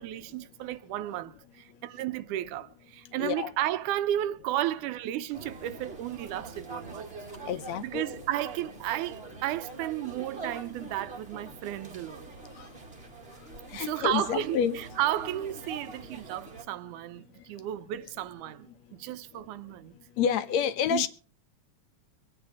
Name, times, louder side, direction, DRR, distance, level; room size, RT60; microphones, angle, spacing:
voice 1, 0.0-7.1 7.8-12.3 13.7-18.7 19.0-19.9 20.9-21.0, right 13 dB, 80° right, 2.2 m, -33 dB
voice 2, 3.2-3.5 7.4-8.3 12.6-12.7 13.7-14.8 20.2-21.1, left 8 dB, 70° left, 1.9 m, -29 dB
sound 1, 5.3-16.6, right 3 dB, 25° right, 1.5 m, -44 dB
24.5 x 8.9 x 3.5 m
omnidirectional pair, 3.6 m